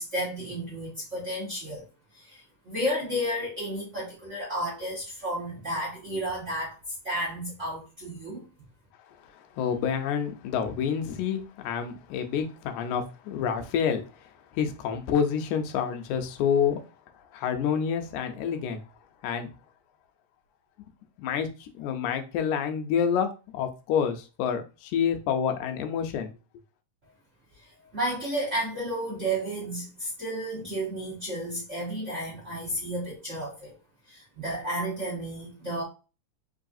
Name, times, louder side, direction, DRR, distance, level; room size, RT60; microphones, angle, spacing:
voice 1, 0.0-1.9 2.1-6.8 7.0-8.4 27.9-33.8 34.1-35.8, right 1 dB, 55° right, 0.8 m, -32 dB
voice 2, 9.5-16.8 17.3-18.8 19.2-19.5 21.2-26.3, left 7 dB, 80° left, 2.0 m, -28 dB
4.7 x 3.2 x 2.5 m
omnidirectional pair, 3.5 m